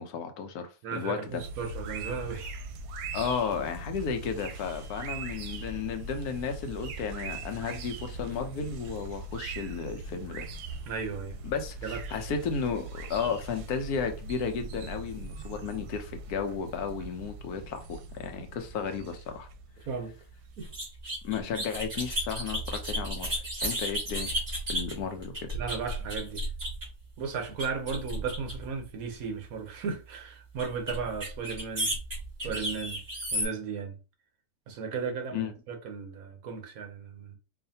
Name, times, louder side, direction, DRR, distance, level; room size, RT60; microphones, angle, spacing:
voice 1, 0.0-1.4 3.1-10.5 11.4-19.5 21.2-24.3 24.7-25.3 35.3-35.5, left 6 dB, 85° left, 1.2 m, -33 dB
voice 2, 0.8-2.6 10.9-11.4 11.8-12.2 19.8-20.1 20.6-20.7 25.5-26.5 27.2-32.0 32.4-33.0 33.3-34.0 34.7-37.4, right 5 dB, 70° right, 1.2 m, -35 dB
sound 1, 1.3-20.7, right 3 dB, 90° right, 1.1 m, -41 dB
sound 2, 20.6-27.0 27.6-28.8 30.6-33.5, equal, 40° right, 2.1 m, -34 dB
4.7 x 2.5 x 2.7 m
omnidirectional pair, 1.6 m